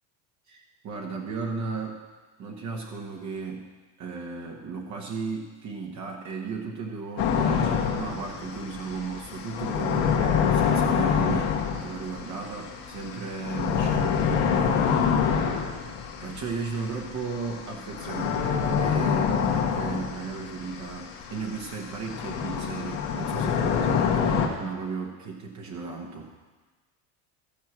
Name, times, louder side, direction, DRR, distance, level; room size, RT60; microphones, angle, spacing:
voice 1, 0.5-2.0 2.4-3.7 4.0-15.5 16.2-26.3, right 5 dB, 45° right, 0 dB, 1.4 m, -35 dB
sound 1, 7.2-24.5, left 7 dB, 80° left, 1.8 m, -26 dB
14.0 x 4.6 x 7.5 m, 1.3 s
supercardioid pair, 115°, 39 cm